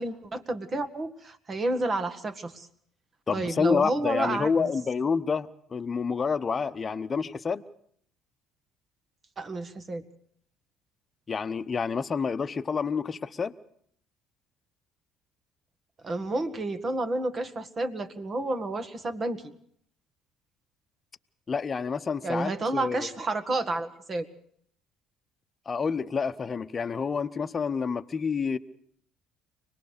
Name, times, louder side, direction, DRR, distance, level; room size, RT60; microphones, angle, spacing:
voice 1, 0.0-2.7 3.3-4.7 9.4-10.0 16.0-19.4 22.2-24.3, right 2 dB, 40° right, 1.9 m, -30 dB
voice 2, 3.3-7.6 11.3-13.5 21.5-23.1 25.7-28.6, left 5 dB, 35° left, 1.0 m, -28 dB
25.0 x 19.5 x 6.8 m
hypercardioid pair, 60°, 0 cm